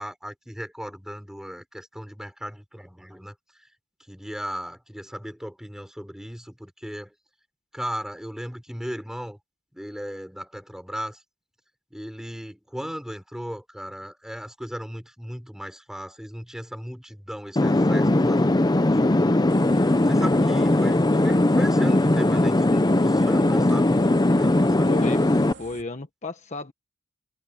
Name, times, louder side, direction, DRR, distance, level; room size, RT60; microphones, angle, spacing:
voice 1, 0.0-3.3 4.1-7.1 7.7-9.4 9.7-11.2 11.9-18.9 19.2-19.4 19.8-24.9, equal, 5° right, 5.8 m, -36 dB
sound 1, 17.6-25.5, left 1 dB, 20° left, 0.7 m, -20 dB
sound 2, 19.5-25.8, right 4 dB, 60° right, 2.8 m, -46 dB
voice 2, 24.8-26.7, left 3 dB, 35° left, 1.4 m, -34 dB
head